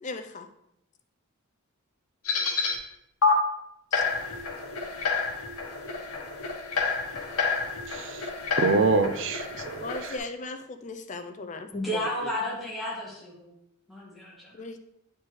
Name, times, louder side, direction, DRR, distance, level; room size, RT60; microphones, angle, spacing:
voice 1, 0.0-0.5 3.9-4.0 9.8-12.0 14.5-14.8, left 3 dB, 35° left, 8 dB, 0.4 m, -37 dB
sound 1, 2.2-2.7 3.2-3.3 3.9-10.2, left 5 dB, 80° left, 1.2 m, -29 dB
voice 2, 7.9-8.3 8.6-10.2, right 3 dB, 55° right, 9 dB, 0.4 m, -26 dB
voice 3, 11.7-13.5 13.9-14.6, left 1 dB, ahead, -6 dB, 1.6 m, -33 dB
8.8 x 4.3 x 3.2 m, 0.82 s
head